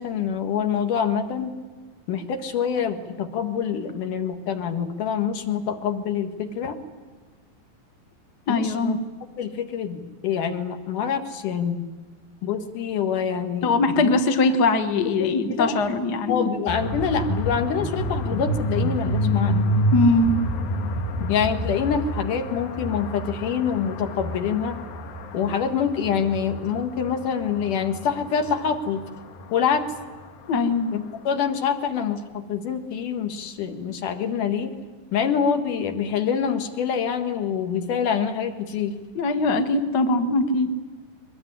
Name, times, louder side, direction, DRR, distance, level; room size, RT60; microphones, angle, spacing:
voice 1, 0.0-1.5 2.1-6.8 8.5-9.0 9.4-11.8 12.4-14.1 15.2-15.8 16.3-19.6 21.3-24.8 25.3-29.0 29.5-29.9 30.9-34.7 35.1-39.0, left 7 dB, 65° left, 6 dB, 3.1 m, -26 dB
voice 2, 8.5-9.0 13.6-16.5 19.9-20.4 30.5-30.9 39.1-40.7, left 3 dB, 50° left, 7 dB, 1.3 m, -21 dB
sound 1, 16.7-30.6, equal, 90° left, 3.5 m, -28 dB
22.5 x 21.0 x 10.0 m, 1.4 s
omnidirectional pair, 4.0 m